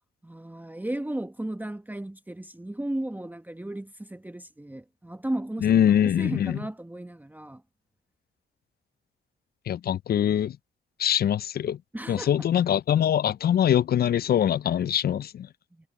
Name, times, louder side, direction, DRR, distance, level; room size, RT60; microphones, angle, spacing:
voice 1, 0.2-5.7 6.2-7.6 11.9-12.5, right 1 dB, 10° right, 1.1 m, -35 dB
voice 2, 5.6-6.6 9.7-10.6 11.0-11.8 12.1-15.5, left 10 dB, 50° left, 0.4 m, -23 dB
cardioid pair, 75°, 20 cm